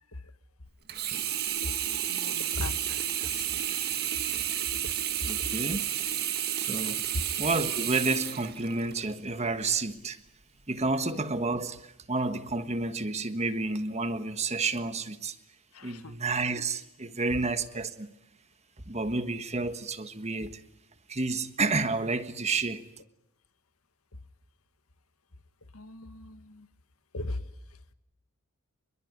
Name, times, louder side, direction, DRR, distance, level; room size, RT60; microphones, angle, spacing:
Sink (filling or washing), 0.9-9.1 9.7-9.8, right 10 dB, 45° right, 2.0 m, -31 dB
voice 1, 2.1-3.4 4.3-4.4 4.8-4.9 15.7-16.1 25.7-26.7 27.1-27.4, left 2 dB, 80° left, 1.7 m, -38 dB
voice 2, 5.2-5.8 6.6-7.0 7.4-10.2 10.7-11.8 12.1-15.3 15.8-18.1 18.9-20.5 21.1-22.8, right 3 dB, 30° right, 1.5 m, -30 dB
27.5 x 21.5 x 9.6 m
head